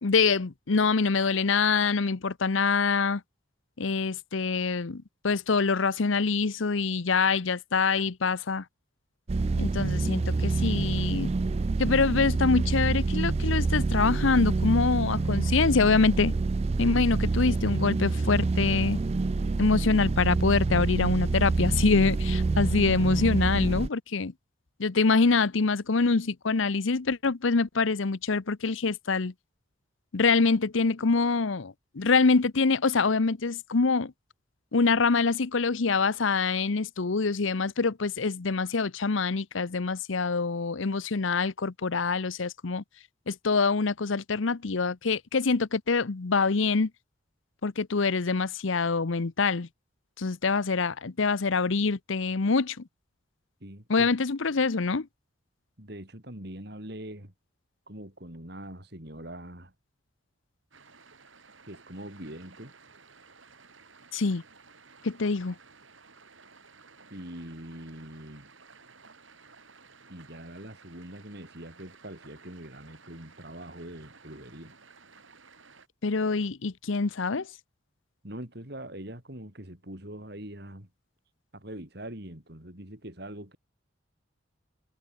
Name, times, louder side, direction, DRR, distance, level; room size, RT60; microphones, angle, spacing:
voice 1, 0.0-3.2 3.8-8.6 9.6-11.3 11.8-16.3 16.8-19.0 19.6-24.3 24.8-29.3 30.1-34.1 34.7-42.8 43.3-46.9 47.6-49.7 50.2-52.8 53.9-55.1 64.1-64.4 65.0-65.5 76.0-77.5, left 4 dB, 75° left, 0.8 m, -25 dB
sound 1, 9.3-23.9, right 3 dB, 30° right, 0.3 m, -27 dB
voice 2, 53.6-54.1 55.8-57.3 57.9-59.7 61.7-62.7 67.1-68.5 70.1-74.8 78.2-80.9 81.5-83.6, right 1 dB, 50° right, 4.6 m, -43 dB
sound 2, 60.7-75.9, right 4 dB, 75° right, 6.6 m, -55 dB
head